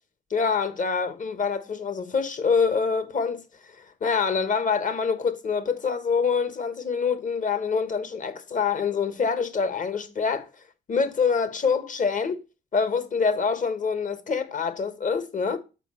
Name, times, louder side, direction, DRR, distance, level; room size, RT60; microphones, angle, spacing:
voice 1, 0.3-3.4 3.8-10.5 10.9-12.4 12.7-15.6, left 5 dB, 40° left, 1.3 m, -25 dB
7.0 x 5.1 x 4.3 m
cardioid pair, 90°, 20 cm